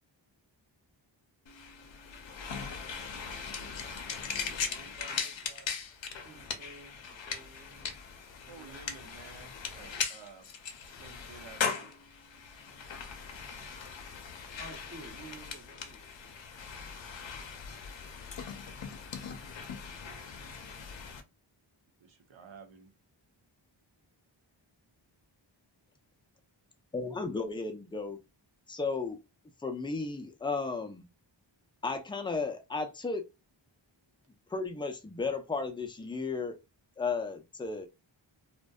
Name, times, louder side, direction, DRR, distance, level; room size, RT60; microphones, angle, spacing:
sound 1, 1.5-21.2, left 6 dB, 70° left, 0.6 m, -39 dB
voice 1, 4.6-5.7 6.2-8.0 8.4-8.7 9.8-9.9 14.6-16.0, right 2 dB, 30° right, 0.7 m, -52 dB
voice 2, 8.5-10.5 10.8-11.9 22.0-22.9, right 5 dB, 80° right, 0.6 m, -52 dB
voice 3, 26.9-28.2 28.7-29.2 29.6-31.1 31.8-33.3 34.5-36.6 37.0-37.9, left 4 dB, 10° left, 0.4 m, -34 dB
2.5 x 2.1 x 2.2 m
wide cardioid pair, 80°, 47 cm